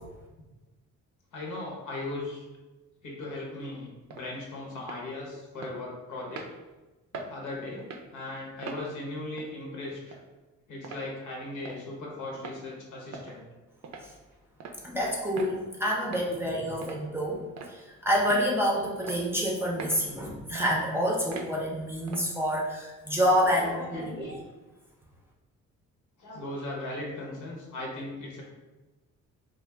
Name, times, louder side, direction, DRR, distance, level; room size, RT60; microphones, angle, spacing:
voice 1, 1.3-2.4 3.0-6.5 7.1-10.2 10.7-13.5 16.3-16.4 23.3-24.4 26.2-28.4, left 2 dB, 80° left, -2 dB, 0.9 m, -38 dB
sound 1, 4.1-4.3 4.8-5.0 5.6-5.7 6.3-6.5 7.1-7.3 7.8-8.1 8.6-8.8 9.4-9.5 10.1-10.2 10.8-11.0 11.6-11.8 12.3-12.6 13.1-13.4 13.8-14.1 14.6-14.8 15.4-15.5 16.1-16.3 16.8-17.0 17.6-17.8 18.3-18.5 19.0-19.2 19.8-20.0 20.5-20.7 21.3-21.5 22.1-22.3, right 4 dB, 65° right, 0.5 m, -41 dB
voice 2, 14.8-17.4 17.7-24.2, equal, 10° right, -3 dB, 0.5 m, -28 dB
2.4 x 2.3 x 3.3 m, 1.2 s
cardioid pair, 90°, 30 cm